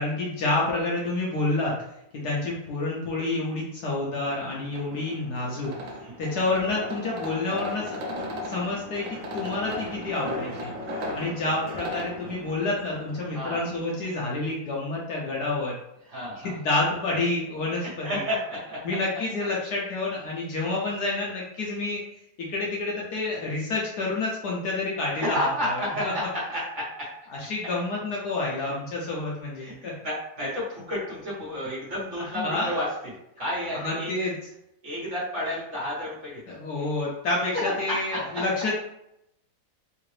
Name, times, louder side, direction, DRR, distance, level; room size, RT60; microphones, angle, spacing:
voice 1, 0.0-1.7 2.1-5.7 6.2-8.0 8.4-10.7 11.1-15.7 16.4-18.2 18.8-22.0 22.5-26.1 27.3-29.9 32.3-32.7 33.8-34.3 36.5-38.7, left 2 dB, 65° left, -4 dB, 1.1 m, -28 dB
sound 1, 4.3-14.3, left 1 dB, 70° right, 0.8 m, -37 dB
voice 2, 16.1-16.6 17.8-18.8 20.5-20.6 25.1-26.8 28.6-28.7 29.6-32.9 33.4-34.1 34.8-36.6 37.5-37.6 38.1-38.2, left 1 dB, 40° right, -7 dB, 1.5 m, -31 dB
3.7 x 2.5 x 3.1 m, 0.80 s
omnidirectional pair, 2.1 m